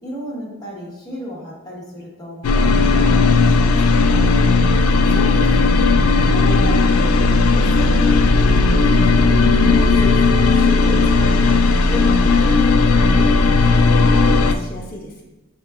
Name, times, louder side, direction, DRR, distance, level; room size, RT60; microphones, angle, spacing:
voice 1, 0.0-4.3, equal, 20° left, -4 dB, 1.2 m, -34 dB
sound 1, 2.4-14.5, left 3 dB, 75° left, 0.3 m, -15 dB
voice 2, 5.0-5.9 6.2-9.4 9.7-11.6 11.8-13.3 13.6-15.2, left 1 dB, 45° left, -2 dB, 1.1 m, -31 dB
5.5 x 3.6 x 2.3 m, 1.0 s
head